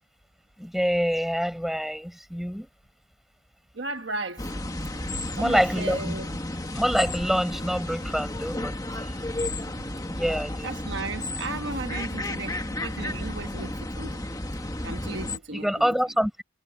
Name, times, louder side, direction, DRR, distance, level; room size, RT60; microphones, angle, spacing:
voice 1, 0.6-2.7 5.4-6.2 6.7-8.7 10.1-10.7 15.5-16.4, equal, ahead, 5.3 m, -26 dB
voice 2, 3.7-4.4 5.1-6.3 9.8-9.9 10.6-14.2 14.8-15.9, right 3 dB, 60° right, 1.3 m, -35 dB
sound 1, 4.4-15.4, left 1 dB, 20° left, 1.5 m, -32 dB
head